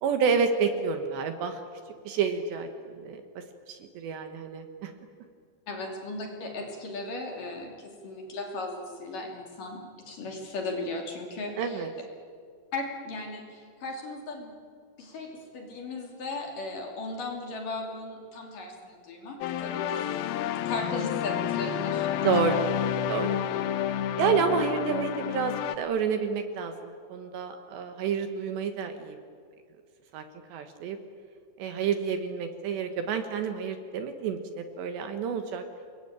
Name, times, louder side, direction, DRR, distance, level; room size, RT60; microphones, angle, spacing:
voice 1, 0.0-1.6 2.0-3.2 3.7-4.9 11.6-11.9 22.2-22.6 23.1-23.4 24.2-29.2 30.1-30.2 30.5-31.0 31.6-35.6, right 6 dB, 70° right, 7 dB, 3.2 m, -29 dB
voice 2, 5.7-11.9 12.7-14.6 15.0-22.6 23.5-23.6 24.6-24.7, left 2 dB, 45° left, 1 dB, 4.0 m, -37 dB
sound 1, 19.4-25.8, left 10 dB, 90° left, 2.1 m, -29 dB
29.5 x 21.0 x 8.9 m, 2.2 s
omnidirectional pair, 5.7 m